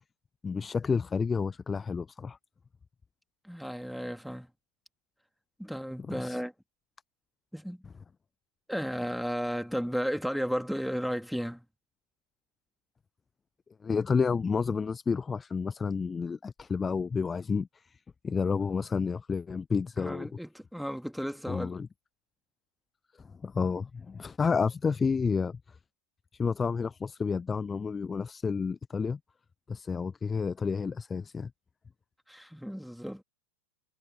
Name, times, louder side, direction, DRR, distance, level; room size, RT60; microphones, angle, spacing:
voice 1, 0.4-2.4 6.2-6.4 13.8-17.7 18.2-20.3 21.5-21.9 23.4-25.6 26.3-29.2 29.7-31.5, left 5 dB, 15° left, 0.7 m, -30 dB
voice 2, 3.4-4.5 5.6-6.5 7.5-7.8 8.7-11.6 20.0-21.8 32.3-33.2, equal, ahead, 3.2 m, -34 dB
figure-of-eight pair, 90°, 0 cm